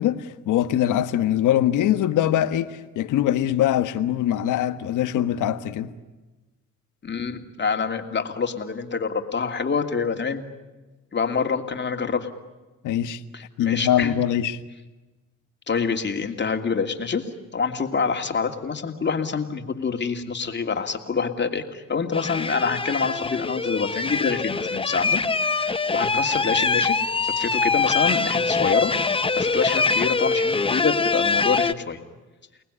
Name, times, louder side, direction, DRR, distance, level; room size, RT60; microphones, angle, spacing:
voice 1, 0.0-5.9 12.8-13.2 13.6-14.6, left 11 dB, 85° left, 1.5 m, -22 dB
voice 2, 7.0-10.4 11.1-12.3 13.3-14.1 15.7-17.3 17.5-25.2 25.5-28.9 29.4-32.0, left 5 dB, 35° left, 2.8 m, -26 dB
sound 1, 22.1-31.7, left 4 dB, 20° left, 0.8 m, -23 dB
29.5 x 19.5 x 10.0 m
cardioid pair, 90°, 30 cm